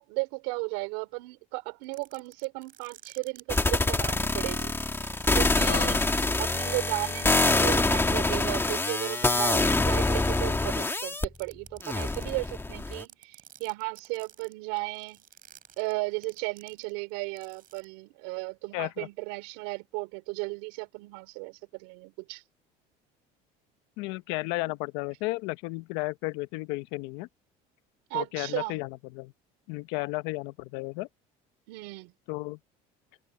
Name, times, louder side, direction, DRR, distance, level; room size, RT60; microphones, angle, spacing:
voice 1, 0.0-4.8 5.3-6.0 6.4-15.2 15.8-22.4 28.1-28.8 31.7-32.1, right 29 dB, 85° right, 4.3 m, -35 dB
sound 1, 1.8-3.8 4.5-5.9 6.5-9.5 9.8-10.8 11.1-12.3 12.8-17.1 17.4-17.8, right 10 dB, 50° right, 7.3 m, -51 dB
sound 2, 3.5-11.3 11.8-13.0, left 2 dB, 10° left, 1.7 m, -25 dB
voice 2, 5.7-6.0 18.7-19.1 24.0-27.3 28.1-29.3 29.7-31.1 32.3-32.6, left 22 dB, 80° left, 1.1 m, -33 dB
supercardioid pair, 95°, 18 cm